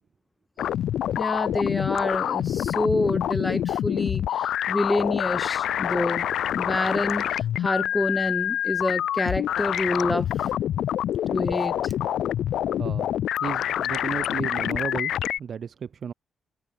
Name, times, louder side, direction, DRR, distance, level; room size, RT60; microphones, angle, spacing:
sound 1, 0.6-15.4, left 11 dB, 80° left, 3.3 m, -26 dB
voice 1, 1.2-6.3 6.6-10.5 11.3-11.9, left 1 dB, 10° left, 0.6 m, -27 dB
voice 2, 12.8-13.1 13.4-16.1, right 7 dB, 45° right, 1.9 m, -34 dB
cardioid pair, 150°, 0 cm